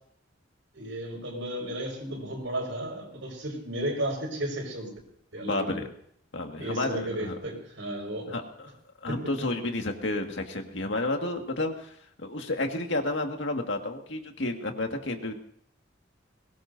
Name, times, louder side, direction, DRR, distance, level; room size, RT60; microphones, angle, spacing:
voice 1, 0.7-4.9 5.3-5.8 6.6-8.3 9.1-9.2, right 1 dB, 85° right, 1 dB, 5.4 m, -33 dB
voice 2, 5.4-5.9 6.3-7.4 8.3-8.4 9.0-15.4, left 2 dB, 70° left, 4 dB, 2.0 m, -31 dB
22.0 x 19.0 x 2.7 m, 0.68 s
head